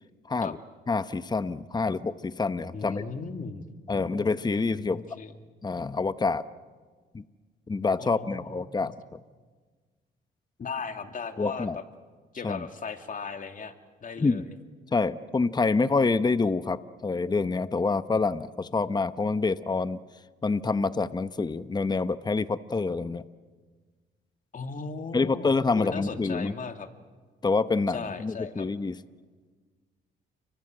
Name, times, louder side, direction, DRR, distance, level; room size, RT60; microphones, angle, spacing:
voice 1, 0.9-3.0 3.9-5.0 5.6-6.4 7.1-7.2 7.7-9.2 11.4-11.8 12.4-12.6 14.2-14.4 14.9-20.0 20.4-23.2 25.1-26.5 27.4-29.0, left 4 dB, 20° left, 13 dB, 0.9 m, -27 dB
voice 2, 2.7-3.7 4.8-5.4 8.0-8.9 10.6-11.8 12.3-13.7 14.0-14.5 24.5-26.9 27.9-28.7, left 5 dB, 40° left, 6 dB, 2.6 m, -37 dB
30.0 x 24.5 x 7.8 m, 1.4 s
cardioid pair, 90°, 20 cm